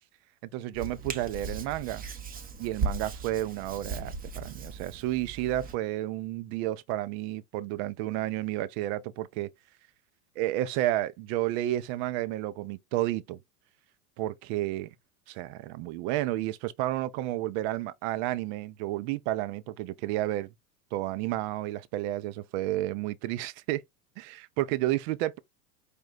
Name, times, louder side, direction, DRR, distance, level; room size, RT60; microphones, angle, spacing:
voice 1, 0.5-2.0 2.6-9.5 10.4-13.4 14.2-14.9 15.3-20.5 20.9-23.8 24.2-25.4, right 15 dB, 45° right, 0.6 m, -31 dB
Hands, 0.7-5.8, right 4 dB, 20° right, 0.8 m, -37 dB
5.1 x 2.3 x 3.8 m
hypercardioid pair, 95°, 45 cm